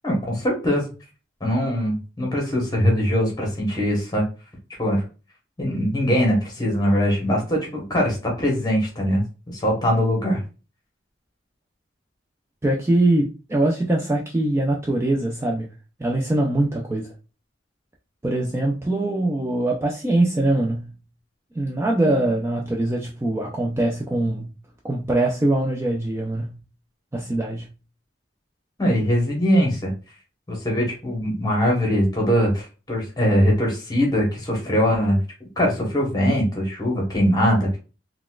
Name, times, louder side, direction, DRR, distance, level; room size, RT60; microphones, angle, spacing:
voice 1, 0.0-0.8 1.4-4.2 4.8-5.0 5.6-9.2 9.5-10.4 28.8-29.9 30.5-35.2 35.6-37.8, equal, 20° left, 1.0 m, -21 dB
voice 2, 12.6-15.7 16.0-17.1 18.2-20.9 21.6-24.5 24.8-26.6 27.1-27.7, right 1 dB, 15° right, 0.3 m, -22 dB
3.9 x 2.2 x 2.3 m
head